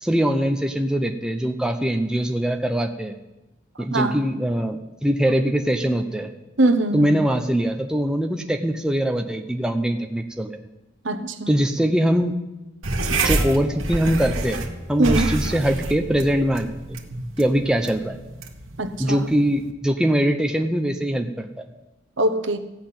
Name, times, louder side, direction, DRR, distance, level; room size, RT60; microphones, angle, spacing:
voice 1, 0.0-3.1 3.8-6.3 6.9-10.6 11.5-12.3 13.1-14.6 14.9-17.0 17.4-18.2 19.0-21.5, equal, 5° right, 0.7 m, -22 dB
voice 2, 6.6-7.2 11.0-11.6 15.0-15.4 18.8-19.2 22.2-22.6, right 2 dB, 70° right, 1.0 m, -22 dB
sound 1, 12.8-19.7, right 2 dB, 90° right, 1.4 m, -28 dB
15.0 x 5.8 x 8.7 m
head